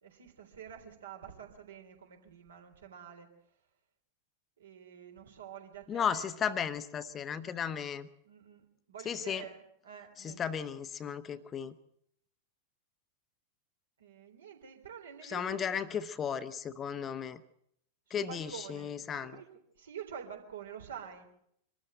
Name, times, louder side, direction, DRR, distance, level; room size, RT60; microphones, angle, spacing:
voice 1, 0.0-3.3 4.6-6.3 8.2-10.4 14.0-16.0 18.1-19.5 19.8-21.3, right 8 dB, 65° right, 4 dB, 3.6 m, -48 dB
voice 2, 5.9-8.1 9.0-9.5 10.2-11.7 15.2-17.4 18.1-19.4, left 8 dB, 25° left, 12 dB, 1.0 m, -35 dB
24.5 x 13.5 x 7.9 m, 0.72 s
figure-of-eight pair, 90°, 0 cm